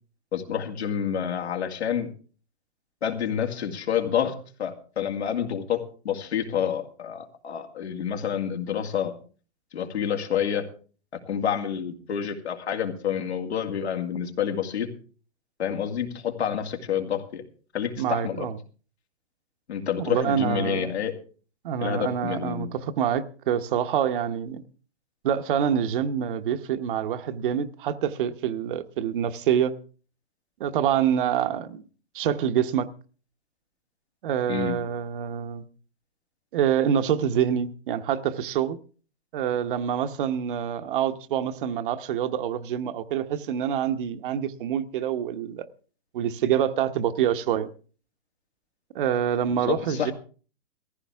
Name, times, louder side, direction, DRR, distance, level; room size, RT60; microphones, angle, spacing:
voice 1, 0.3-2.1 3.0-9.1 9.7-10.7 11.1-14.9 15.6-17.4 17.7-18.5 19.7-21.1 21.8-22.7 34.5-34.8 49.6-50.1, left 8 dB, 90° left, 2.4 m, -28 dB
voice 2, 18.0-18.6 20.0-20.9 21.6-24.6 25.2-29.7 30.6-31.8 32.1-32.9 34.2-35.6 36.5-38.8 39.3-45.7 46.1-47.7 48.9-50.1, right 9 dB, 55° right, 1.0 m, -26 dB
17.0 x 15.0 x 3.5 m
hypercardioid pair, 150°, 32 cm